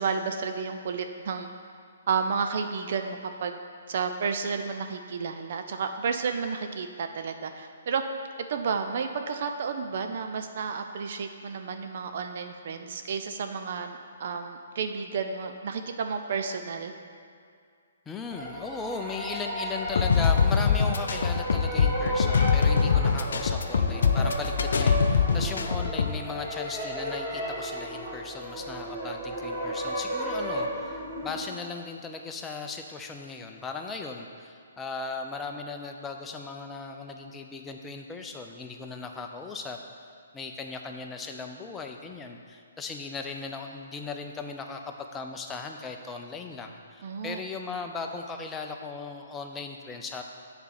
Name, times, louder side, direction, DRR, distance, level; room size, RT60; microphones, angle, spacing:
voice 1, 0.0-1.5 2.1-3.6 3.9-8.0 8.5-16.9 47.0-47.4, right 5 dB, 55° right, 6 dB, 0.5 m, -31 dB
voice 2, 18.1-39.8 40.3-50.2, left 4 dB, 15° left, 3 dB, 0.6 m, -37 dB
sound 1, 18.3-31.4, equal, 15° right, 1.7 m, -34 dB
sound 2, 19.9-26.1, left 6 dB, 65° left, 0.4 m, -23 dB
6.9 x 4.3 x 6.6 m, 2.3 s
figure-of-eight pair, 130°, 0 cm